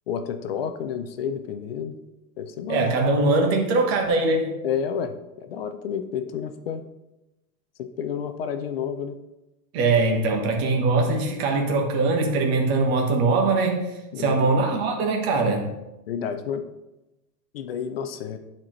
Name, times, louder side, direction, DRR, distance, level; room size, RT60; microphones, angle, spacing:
voice 1, 0.1-2.0 2.4-2.9 4.6-6.9 7.8-9.2 14.1-14.5 16.1-16.7 17.5-18.4, left 7 dB, 40° left, 8 dB, 0.4 m, -30 dB
voice 2, 2.7-4.6 9.7-13.9 14.2-15.7, right 3 dB, 40° right, 2 dB, 1.3 m, -22 dB
9.8 x 4.4 x 3.1 m, 0.99 s
supercardioid pair, 155°, 49 cm